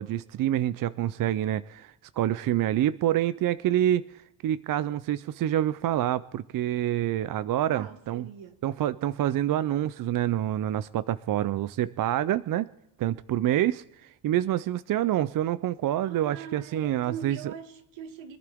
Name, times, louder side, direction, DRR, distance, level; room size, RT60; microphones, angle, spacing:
voice 1, 0.0-8.3 8.6-12.7 13.0-17.4, right 12 dB, 45° right, 0.4 m, -27 dB
voice 2, 7.7-8.6 16.0-18.4, right 8 dB, 65° right, 1.7 m, -42 dB
25.5 x 11.5 x 3.5 m
cardioid pair, 130°, 50 cm